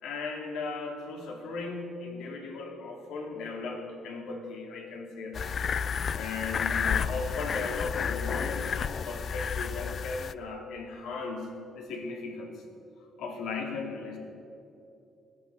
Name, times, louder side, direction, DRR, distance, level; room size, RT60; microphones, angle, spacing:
voice 1, 0.0-5.5 6.1-12.6 13.2-14.2, left 4 dB, 85° left, 1 dB, 2.9 m, -37 dB
sound 1, 5.3-10.3, left 6 dB, 45° left, 0.4 m, -31 dB
16.5 x 11.0 x 7.6 m, 2.7 s
cardioid pair, 130°, 0 cm